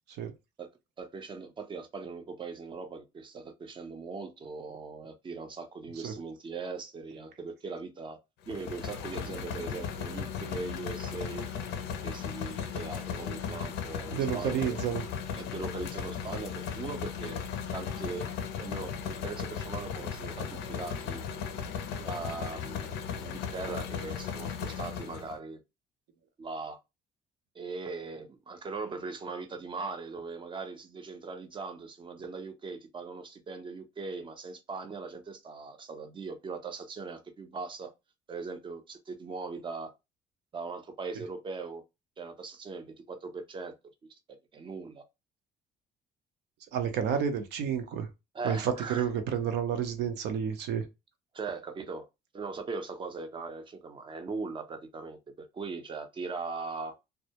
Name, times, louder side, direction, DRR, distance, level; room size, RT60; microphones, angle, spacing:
voice 1, 1.0-8.2 8.5-11.5 12.0-14.8 15.3-17.4 17.7-18.2 18.6-21.2 22.0-25.6 26.4-26.8 27.5-37.9 38.3-39.9 40.5-41.8 42.2-43.8 44.5-45.0 48.3-49.1 51.3-52.1 52.3-57.0, right 4 dB, 30° right, 0.5 m, -40 dB
sound 1, 8.5-25.4, left 7 dB, 85° left, 0.5 m, -36 dB
voice 2, 14.1-15.0 46.7-48.1 48.4-50.8, right 8 dB, 85° right, 0.6 m, -30 dB
2.2 x 2.0 x 2.8 m
cardioid pair, 110°, 17 cm